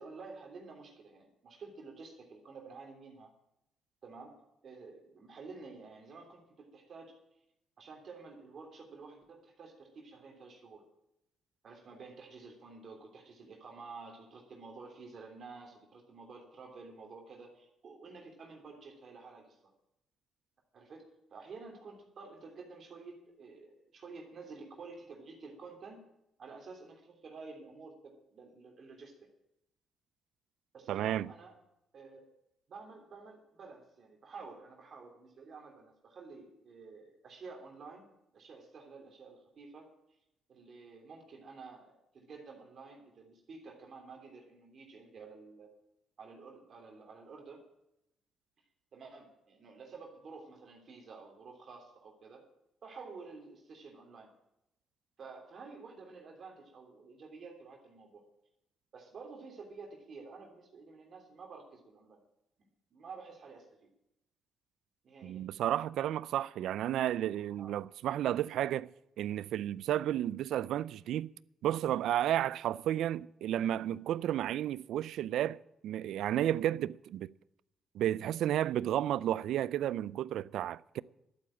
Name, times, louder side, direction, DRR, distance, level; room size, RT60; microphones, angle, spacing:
voice 1, 0.0-3.3 4.0-7.2 7.8-10.8 11.6-19.6 20.7-26.1 26.4-29.3 30.7-31.6 31.9-32.2 32.7-38.1 38.3-39.9 40.5-45.7 46.2-47.6 48.9-52.4 52.8-54.3 55.2-58.2 58.9-62.2 62.6-63.9 65.0-65.5 67.6-67.7, right 4 dB, 55° right, 3.1 m, -50 dB
voice 2, 30.9-31.3 65.2-68.9 69.2-71.3 71.6-75.6 75.8-77.3 77.9-81.0, right 12 dB, 80° right, 0.4 m, -32 dB
12.0 x 8.6 x 8.8 m
cardioid pair, 90°, 0 cm